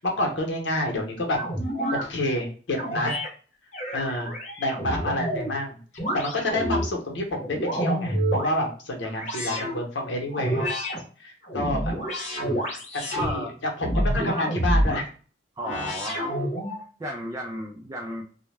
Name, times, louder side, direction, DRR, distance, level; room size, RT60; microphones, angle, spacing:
voice 1, 0.0-1.4 1.9-3.2 3.9-5.8 6.1-10.7 11.2-11.9 12.9-15.1, left 1 dB, 80° left, 1 dB, 0.8 m, -28 dB
sound 1, 1.4-2.1 2.8-3.3 3.7-5.5 6.0-6.9 7.3-8.5 9.2-9.8 10.3-11.0 11.4-13.3 13.8-15.0 15.6-16.8, equal, 40° left, 0.8 m, -28 dB
voice 2, 13.1-13.5 15.6-16.3 17.0-18.2, equal, 20° right, 1 dB, 0.3 m, -34 dB
2.2 x 2.1 x 3.2 m, 0.40 s
head